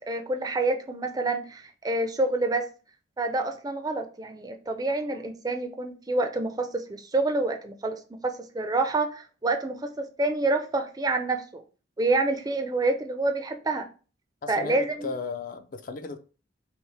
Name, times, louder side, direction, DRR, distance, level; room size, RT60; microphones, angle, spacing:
voice 1, 0.0-2.7 3.2-11.6 12.0-13.9 14.5-15.1, right 2 dB, 20° right, 0.4 m, -27 dB
voice 2, 14.4-16.2, left 4 dB, 45° left, 0.4 m, -35 dB
5.4 x 2.0 x 3.3 m
head